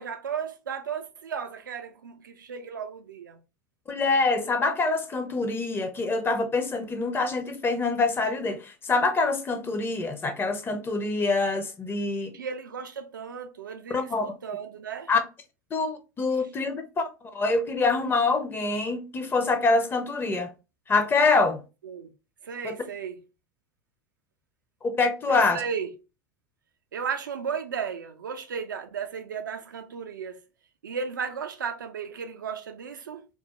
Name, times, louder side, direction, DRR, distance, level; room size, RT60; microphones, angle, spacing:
voice 1, 0.0-3.4 12.3-15.1 16.3-16.5 21.8-22.1 22.4-23.2 25.3-25.9 26.9-30.4 30.8-33.3, right 6 dB, 80° right, 0.4 m, -35 dB
voice 2, 3.9-12.3 13.9-14.2 15.1-15.2 15.7-20.5 20.9-21.6 22.6-22.8 24.8-25.6, left 3 dB, 20° left, 0.5 m, -25 dB
2.2 x 2.0 x 2.8 m
figure-of-eight pair, 85°, 11 cm